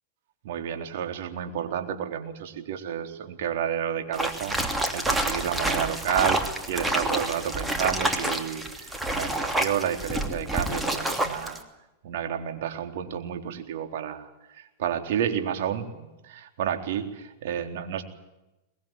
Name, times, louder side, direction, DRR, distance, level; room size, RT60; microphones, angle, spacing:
voice 1, 0.4-6.4 6.7-11.6 12.0-14.3 14.6-18.0, right 9 dB, 70° right, 6 dB, 3.8 m, -31 dB
sound 1, 4.1-11.6, right 1 dB, 5° right, 2.9 m, -28 dB
22.5 x 21.5 x 9.2 m, 0.97 s
hypercardioid pair, 130°, 0 cm